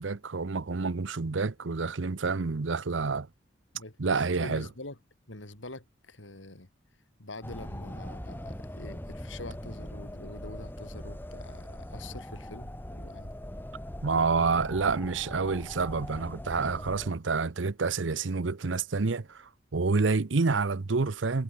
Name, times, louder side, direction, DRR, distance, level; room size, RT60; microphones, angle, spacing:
voice 1, 0.0-3.3 4.0-4.7 14.0-21.4, right 4 dB, 75° right, 0.8 m, -28 dB
voice 2, 3.7-5.0 5.3-6.7 7.2-13.4 19.9-20.1, left 2 dB, 80° left, 4.1 m, -45 dB
sound 1, 7.4-17.1, equal, 10° left, 1.9 m, -41 dB
head